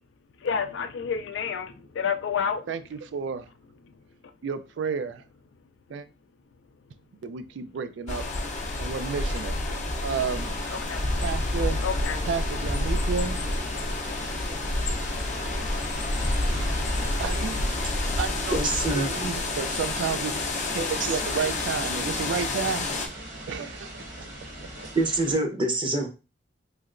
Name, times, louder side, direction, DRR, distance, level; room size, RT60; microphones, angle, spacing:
voice 1, 0.4-2.7 3.8-4.4 5.5-5.7 6.7-6.9 8.3-8.5 10.7-11.0 11.8-12.3, left 6 dB, 90° left, 0.4 m, -31 dB
voice 2, 3.1-3.5 4.4-5.2 5.9-6.1 7.2-8.2 8.8-10.5 11.2-11.8 12.3-13.4 17.2-17.6 18.2-20.4 20.7-23.0 23.5-24.0, right 6 dB, 75° right, 0.3 m, -31 dB
sound 1, 8.1-23.1, left 2 dB, 40° left, 0.5 m, -29 dB
sound 2, 10.1-25.3, right 1 dB, 55° right, 1.1 m, -40 dB
voice 3, 18.5-19.1 24.9-26.1, right 2 dB, 30° right, 0.7 m, -25 dB
3.2 x 2.8 x 2.5 m
head